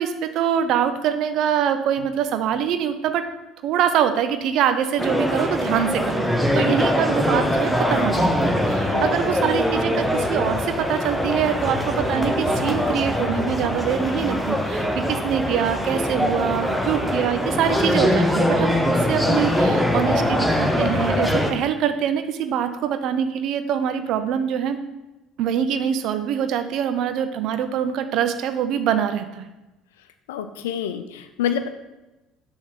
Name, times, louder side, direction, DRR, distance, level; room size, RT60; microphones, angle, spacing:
voice 1, 0.0-3.2 3.6-24.8 25.4-29.5, right 9 dB, 55° right, 9 dB, 0.6 m, -24 dB
sound 1, 5.0-21.5, left 1 dB, ahead, 0.9 m, -22 dB
voice 2, 30.3-31.7, left 9 dB, 70° left, 9 dB, 0.5 m, -27 dB
7.1 x 3.6 x 6.1 m, 1.0 s
figure-of-eight pair, 60°, 0 cm